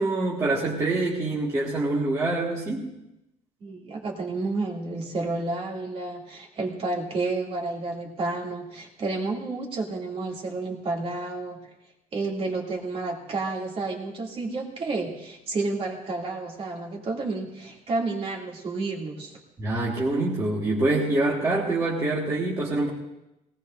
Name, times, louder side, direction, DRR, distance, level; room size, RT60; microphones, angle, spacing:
voice 1, 0.0-2.9 19.6-22.9, right 2 dB, 20° right, -5 dB, 1.7 m, -25 dB
voice 2, 3.6-11.7 12.1-19.4, right 3 dB, 40° right, -1 dB, 2.5 m, -30 dB
20.5 x 18.0 x 2.6 m, 0.89 s
cardioid pair, 165°, 16 cm